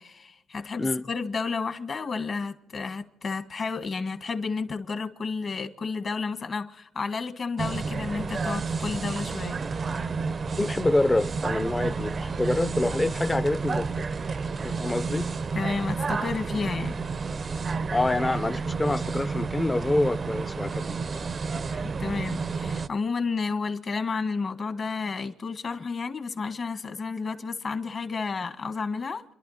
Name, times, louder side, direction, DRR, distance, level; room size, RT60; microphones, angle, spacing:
voice 1, 0.0-9.6 15.5-17.0 21.7-29.3, left 4 dB, 45° left, 1.6 m, -31 dB
sound 1, 7.6-22.9, right 4 dB, 40° right, 0.5 m, -30 dB
voice 2, 10.6-14.1 14.6-15.3 17.9-21.2, left 2 dB, 15° left, 0.6 m, -26 dB
29.5 x 11.5 x 4.2 m
cardioid pair, 90°, 0 cm